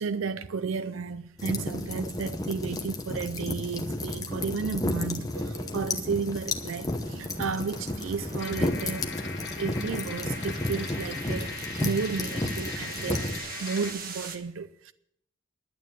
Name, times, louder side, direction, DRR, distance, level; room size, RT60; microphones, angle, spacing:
voice 1, 0.0-9.1 9.6-11.5 11.8-13.3 13.6-14.9, right 5 dB, 85° right, 0.5 m, -33 dB
sound 1, 1.0-14.4, right 4 dB, 45° right, 1.3 m, -45 dB
sound 2, 1.4-13.4, left 1 dB, 20° left, 0.9 m, -32 dB
sound 3, 8.4-13.9, left 7 dB, 60° left, 1.3 m, -40 dB
11.0 x 9.3 x 6.9 m
head